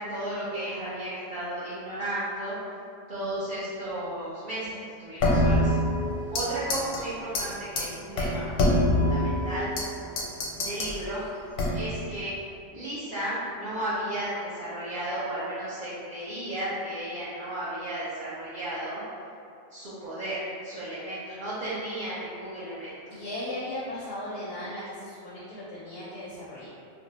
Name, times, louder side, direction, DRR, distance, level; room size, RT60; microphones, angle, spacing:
voice 1, 0.0-2.6 3.1-5.8 6.3-8.5 8.9-9.7 10.6-11.2 11.7-12.3 12.7-19.0 19.7-23.1, right 1 dB, 55° right, -11 dB, 0.6 m, -34 dB
sound 1, 5.2-6.4 6.7-7.0 7.3-7.4 7.8-7.9 8.2-9.9 10.2-10.9 11.6-12.0, left 1 dB, 85° left, 1.0 m, -24 dB
voice 2, 23.1-26.7, left 1 dB, 65° left, -8 dB, 0.6 m, -37 dB
2.6 x 2.0 x 3.9 m, 2.6 s
omnidirectional pair, 1.4 m